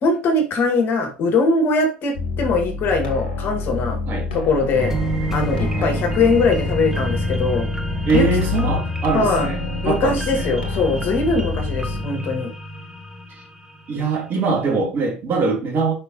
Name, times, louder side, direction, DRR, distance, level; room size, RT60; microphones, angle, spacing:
voice 1, 0.0-4.0 4.3-4.9 5.3-7.7 8.1-8.3 9.1-9.5 9.8-12.5, left 3 dB, 45° left, 2.1 m, -21 dB
sound 1, 2.1-12.0, left 4 dB, 70° left, 1.5 m, -27 dB
sound 2, 4.7-14.1 14.5-14.6, equal, 10° right, 1.2 m, -28 dB
voice 2, 8.1-10.5 13.9-15.9, right 4 dB, 40° right, 2.5 m, -22 dB
6.0 x 5.7 x 3.0 m
figure-of-eight pair, 65°, 5 cm